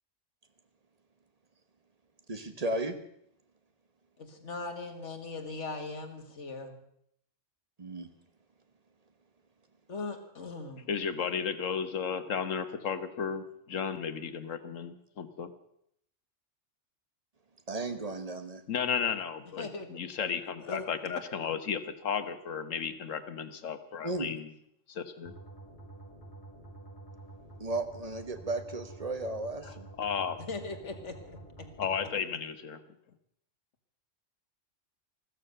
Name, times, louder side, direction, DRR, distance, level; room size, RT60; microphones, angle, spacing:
voice 1, 2.3-3.0 7.8-8.1 17.7-18.6 24.0-24.3 27.6-29.9, right 2 dB, 30° right, 8 dB, 1.3 m, -34 dB
voice 2, 4.2-6.8 9.9-10.9 19.6-19.9 20.6-20.9 30.4-31.7, left 3 dB, 70° left, 5 dB, 2.2 m, -40 dB
voice 3, 10.9-15.5 18.7-24.5 24.9-25.3 29.6-30.4 31.8-32.8, left 7 dB, 85° left, 10 dB, 1.5 m, -34 dB
sound 1, 25.2-32.1, right 2 dB, 15° left, 4.9 m, -49 dB
14.5 x 13.0 x 6.7 m, 0.72 s
omnidirectional pair, 1.3 m